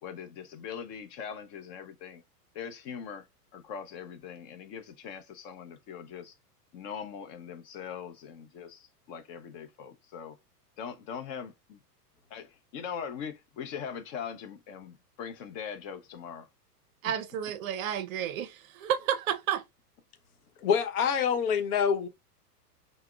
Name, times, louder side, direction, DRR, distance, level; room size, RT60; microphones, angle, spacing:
voice 1, 0.0-2.2 2.5-3.3 3.5-6.3 6.7-10.4 10.8-11.8 12.3-16.5 17.0-17.1, left 7 dB, 35° left, 0.6 m, -41 dB
voice 2, 17.0-19.6, right 9 dB, 60° right, 0.5 m, -31 dB
voice 3, 20.6-22.1, left 7 dB, 65° left, 0.9 m, -26 dB
5.7 x 2.1 x 2.3 m
hypercardioid pair, 125°, 48 cm